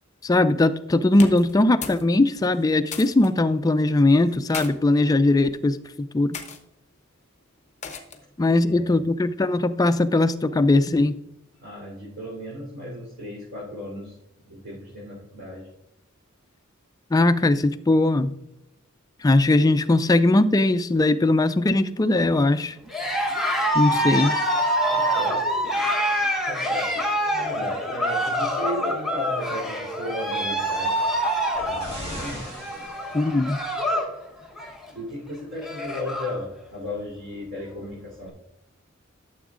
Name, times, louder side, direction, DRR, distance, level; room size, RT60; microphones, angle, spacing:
voice 1, 0.2-6.4 8.4-11.2 17.1-18.3 19.2-22.7 23.7-24.3 33.1-33.6, left 2 dB, 15° left, 11 dB, 0.3 m, -20 dB
sound 1, 1.1-2.1 2.4-3.3 4.2-4.7 5.5-5.7 6.3-6.6 7.8-8.3, left 6 dB, 35° left, 0.8 m, -36 dB
voice 2, 8.6-9.1 11.6-14.1 14.4-15.7 23.8-24.2 24.9-25.6 26.5-26.9 27.3-31.0 31.6-32.5 34.9-38.3, left 1 dB, 65° right, -6 dB, 3.4 m, -35 dB
Cheering, 22.9-34.1 34.4-34.9 35.3-35.4 35.6-36.4, equal, ahead, 1.1 m, -26 dB
sound 2, 30.4-33.7 34.7-34.8, equal, 30° right, 2.6 m, -41 dB
13.0 x 7.0 x 2.5 m, 0.81 s
head